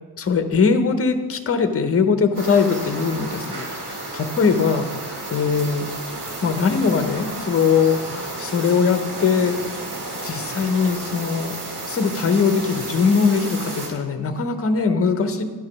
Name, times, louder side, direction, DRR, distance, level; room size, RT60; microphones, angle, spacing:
voice 1, 0.2-5.9 6.4-9.5 10.2-11.6 11.9-15.4, left 5 dB, 35° left, 8 dB, 0.7 m, -21 dB
sound 1, 2.4-13.9, right 2 dB, 85° right, 2.4 m, -32 dB
10.5 x 4.8 x 6.0 m, 1.4 s
wide cardioid pair, 165°, 40 cm